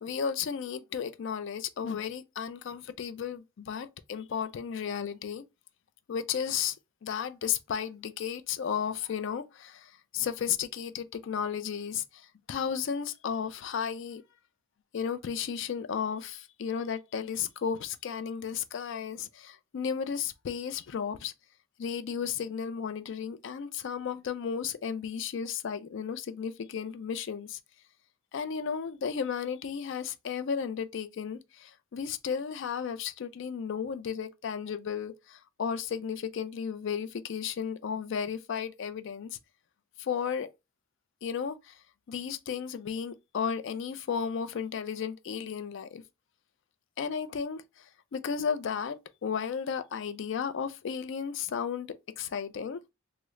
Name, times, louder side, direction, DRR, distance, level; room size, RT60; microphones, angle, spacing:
voice 1, 0.0-5.4 6.1-6.8 7.0-14.2 14.9-21.3 21.8-27.6 28.3-39.4 40.0-40.5 41.2-41.7 42.1-46.0 47.0-47.8 48.1-52.8, left 7 dB, 60° left, 0.4 m, -34 dB
3.5 x 2.0 x 3.1 m
head